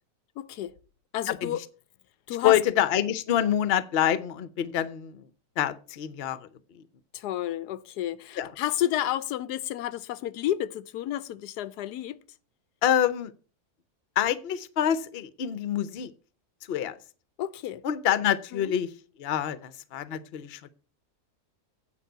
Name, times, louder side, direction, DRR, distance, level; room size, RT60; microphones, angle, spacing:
voice 1, 0.4-0.8 1.1-1.6 2.3-2.6 7.1-12.2 17.4-17.8 18.5-18.7, left 12 dB, 90° left, 1.2 m, -31 dB
voice 2, 1.3-1.6 2.4-5.2 5.6-6.5 6.7-6.8 8.4-8.5 12.8-13.3 14.2-16.1 16.7-17.0 17.8-18.9 19.2-20.7, left 10 dB, 50° left, 0.8 m, -26 dB
9.0 x 5.2 x 8.0 m
omnidirectional pair, 1.7 m